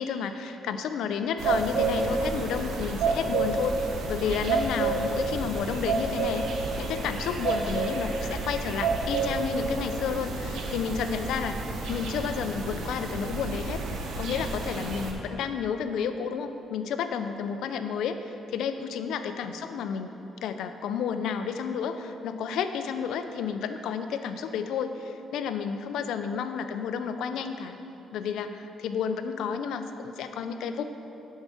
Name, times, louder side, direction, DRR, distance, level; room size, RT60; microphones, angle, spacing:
voice 1, 0.0-6.4 6.8-11.6 11.9-13.8 14.2-20.1 20.4-27.8 28.1-30.8, left 7 dB, 80° left, 9 dB, 0.5 m, -31 dB
sound 1, 1.4-15.1, right 3 dB, 80° right, 1.1 m, -30 dB
7.9 x 5.6 x 5.9 m, 3.0 s
cardioid pair, 90°, 0 cm